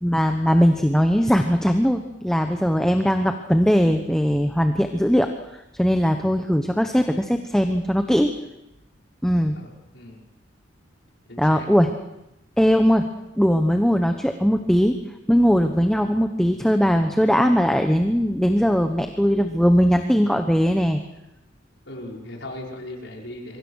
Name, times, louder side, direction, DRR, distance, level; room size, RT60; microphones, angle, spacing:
voice 1, 0.0-5.3 5.8-8.3 9.2-9.6 11.4-11.9 12.6-13.1 13.4-15.0 15.3-21.0, equal, 5° left, 6 dB, 1.1 m, -19 dB
voice 2, 9.5-10.2 11.3-11.7 21.9-23.6, left 1 dB, 70° left, -1 dB, 5.5 m, -38 dB
26.5 x 23.5 x 6.5 m, 0.91 s
head